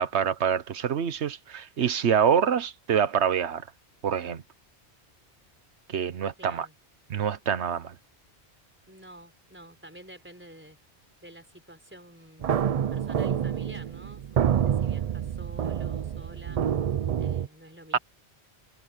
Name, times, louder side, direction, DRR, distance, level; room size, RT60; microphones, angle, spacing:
voice 1, 0.0-3.6 4.0-4.4 5.9-6.7 7.1-7.9 17.9-18.0, right 8 dB, 80° right, 1.2 m, -26 dB
voice 2, 6.4-6.7 8.9-10.8 11.2-12.6 12.9-16.6 17.2-18.0, right 1 dB, 10° right, 4.4 m, -49 dB
sound 1, 12.4-17.5, right 9 dB, 60° right, 0.4 m, -27 dB
omnidirectional pair, 1.1 m